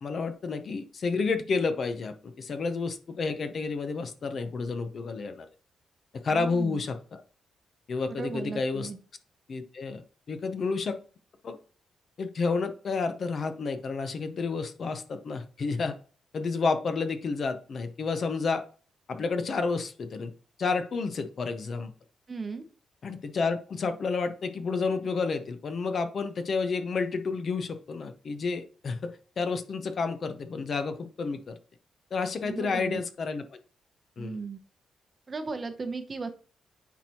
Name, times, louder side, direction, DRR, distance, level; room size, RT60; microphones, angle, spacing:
voice 1, 0.0-5.5 6.2-7.2 7.9-8.9 9.5-10.0 10.3-11.0 11.4-11.6 12.2-16.0 16.3-18.6 19.1-20.3 20.6-21.9 23.0-31.6 32.1-33.6 34.2-34.4, left 4 dB, 40° left, 9 dB, 0.6 m, -30 dB
voice 2, 6.3-6.8 8.1-9.0 22.3-22.7 32.4-33.0 34.2-34.6 35.3-36.3, right 4 dB, 25° right, 7 dB, 0.7 m, -36 dB
9.3 x 4.4 x 2.9 m, 0.40 s
wide cardioid pair, 170°, 0 cm